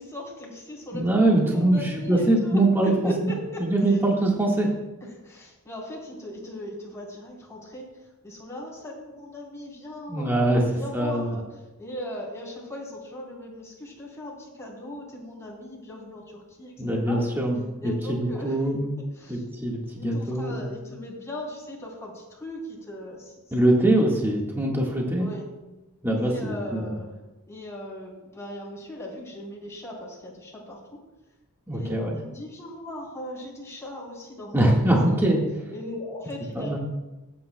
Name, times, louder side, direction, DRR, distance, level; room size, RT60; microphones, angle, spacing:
voice 1, 0.0-1.0 1.3-4.0 5.2-7.9 8.2-11.5 11.8-16.7 17.1-17.2 17.8-18.6 19.0-19.4 19.9-23.3 24.0-24.1 25.2-25.5 26.3-27.1 27.5-31.0 31.7-35.2 35.7-36.8, left 1 dB, 15° left, -4 dB, 3.8 m, -38 dB
voice 2, 0.9-2.9 3.6-4.7 10.1-10.6 10.9-11.3 16.8-18.9 19.3-20.6 23.5-25.3 26.0-26.9 31.7-32.2 34.5-35.4 36.5-36.8, right 1 dB, 10° right, -2 dB, 1.6 m, -23 dB
23.0 x 9.1 x 2.2 m, 1.1 s
head